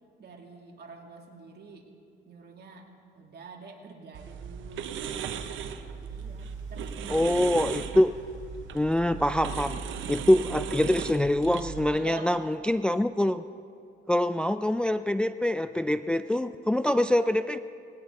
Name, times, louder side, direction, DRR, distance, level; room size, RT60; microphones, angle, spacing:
voice 1, 0.2-1.9 2.3-5.2 6.0-7.5 11.9-12.6, right 4 dB, 55° right, 0 dB, 2.5 m, -47 dB
sound 1, 4.1-11.8, right 7 dB, 75° right, 0.9 m, -37 dB
sound 2, 5.7-10.2, left 2 dB, 40° left, 4.4 m, -53 dB
voice 2, 7.1-8.1 8.7-9.8 10.1-13.4 14.1-17.6, left 1 dB, 5° left, 11 dB, 0.3 m, -25 dB
20.0 x 17.5 x 3.8 m, 2.5 s
cardioid pair, 90°, 20 cm